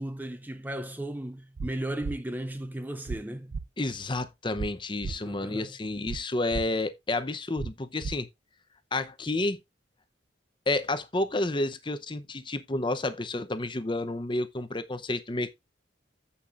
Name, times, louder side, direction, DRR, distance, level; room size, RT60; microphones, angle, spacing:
voice 1, 0.0-3.6 5.1-5.8, right 1 dB, 10° right, 0.4 m, -36 dB
sound 1, 1.6-1.7 2.0-2.2 3.1-3.2 3.5-3.6 4.6-4.7 5.0-5.2 6.1-6.2 6.5-6.6 7.6-7.7 8.0-8.1, right 4 dB, 85° right, 0.5 m, -34 dB
voice 2, 3.8-8.3 8.9-9.6 10.7-15.5, left 2 dB, 25° left, 0.7 m, -30 dB
14.5 x 5.6 x 2.5 m
head